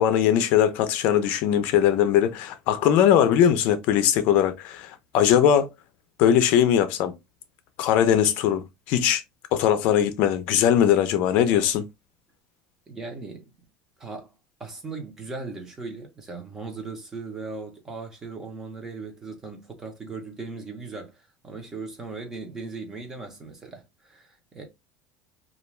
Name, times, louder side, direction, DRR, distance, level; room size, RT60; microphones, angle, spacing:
voice 1, 0.0-5.7 6.2-7.1 7.8-9.2 9.5-11.8, left 9 dB, 55° left, 0.5 m, -20 dB
voice 2, 12.9-13.5 14.0-14.3 14.6-24.6, right 3 dB, 15° right, 0.7 m, -38 dB
2.4 x 2.2 x 3.1 m
cardioid pair, 170°, 3 cm